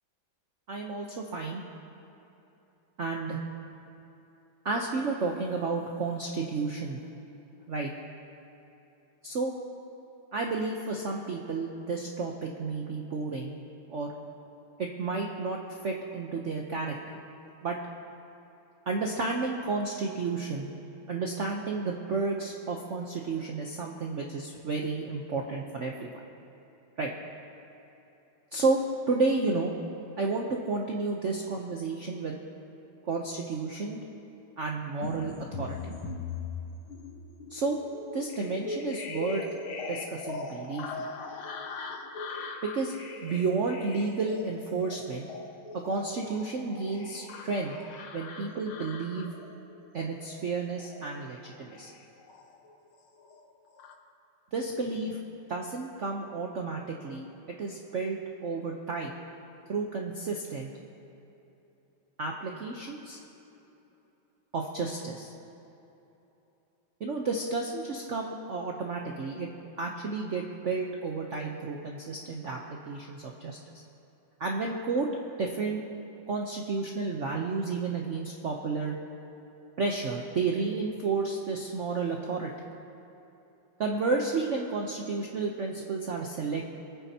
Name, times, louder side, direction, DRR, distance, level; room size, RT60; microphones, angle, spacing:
voice 1, 0.7-1.6 3.0-3.4 4.6-7.0 7.7-7.9 9.2-9.5 10.3-13.6 13.9-14.1 14.8-17.2 17.6-17.8 18.9-20.7 21.1-26.1 27.0-27.1 28.5-28.8 29.1-29.7 30.2-32.4 33.0-34.0 34.6-35.8 37.5-37.8 38.1-39.4 39.9-41.1 42.6-42.9 43.2-45.2 45.8-47.7 48.1-49.3 49.9-51.9 54.5-55.2 55.5-59.1 59.7-60.7 62.2-63.2 64.5-65.3 67.0-69.5 69.8-72.6 72.9-73.6 74.4-75.1 75.4-75.8 76.3-79.0 79.8-82.5 83.8-86.6, right 4 dB, 60° right, 0 dB, 0.8 m, -31 dB
sound 1, 35.0-52.8 53.1-53.9, left 4 dB, 90° left, 1.9 m, -40 dB
26.5 x 9.5 x 2.8 m, 3.0 s
omnidirectional pair, 2.2 m